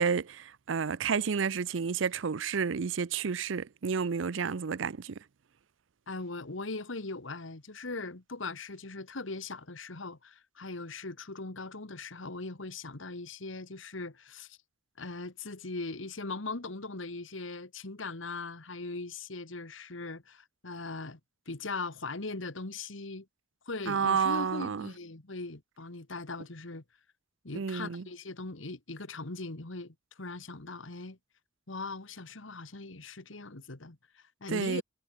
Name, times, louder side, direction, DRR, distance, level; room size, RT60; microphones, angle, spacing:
voice 1, 0.0-5.2 23.9-24.9 27.5-28.0 34.5-34.8, right 6 dB, 75° right, 0.5 m, -30 dB
voice 2, 6.1-14.6 15.0-21.2 21.5-23.3 23.7-26.8 27.4-31.2 31.7-34.0 34.4-34.8, left 3 dB, 80° left, 1.8 m, -40 dB
head